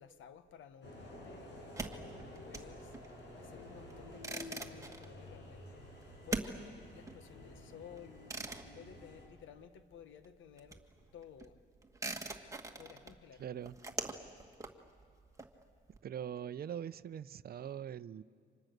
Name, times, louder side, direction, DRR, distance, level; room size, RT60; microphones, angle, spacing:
voice 1, 0.0-1.5 1.8-2.9 3.4-5.8 6.2-8.2 8.7-10.8 11.1-11.6 12.8-13.4, left 8 dB, 75° left, 1.4 m, -55 dB
sound 1, 0.8-9.3, left 1 dB, 60° left, 7.9 m, -51 dB
sound 2, 1.6-9.9 10.2-16.0, right 2 dB, 15° right, 1.9 m, -44 dB
voice 2, 13.4-13.8 16.0-18.2, right 9 dB, 50° right, 0.7 m, -42 dB
29.5 x 26.0 x 6.7 m
cardioid pair, 90°, 20 cm